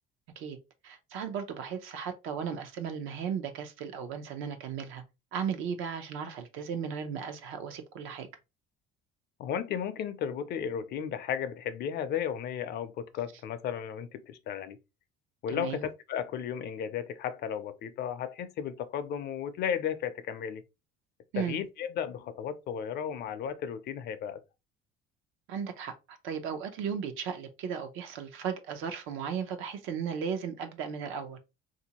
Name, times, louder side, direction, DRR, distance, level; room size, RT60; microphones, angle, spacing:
voice 1, 0.8-5.0 5.3-8.3 15.5-15.9 21.3-21.6 25.5-31.4, right 7 dB, 75° right, 0.7 m, -36 dB
voice 2, 9.4-14.8 15.4-20.6 21.4-24.4, left 8 dB, 50° left, 0.5 m, -34 dB
3.5 x 2.6 x 2.8 m
cardioid pair, 145°, 21 cm